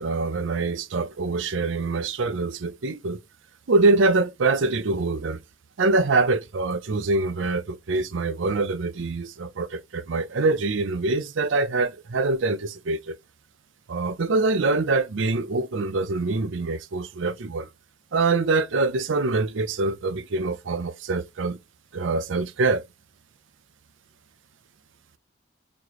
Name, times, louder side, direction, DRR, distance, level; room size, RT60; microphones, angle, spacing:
voice 1, 0.0-3.2 3.7-5.4 5.8-13.2 13.9-17.7 18.1-21.6 21.9-22.8, right 3 dB, 80° right, 0.6 m, -24 dB
4.2 x 3.1 x 2.9 m
head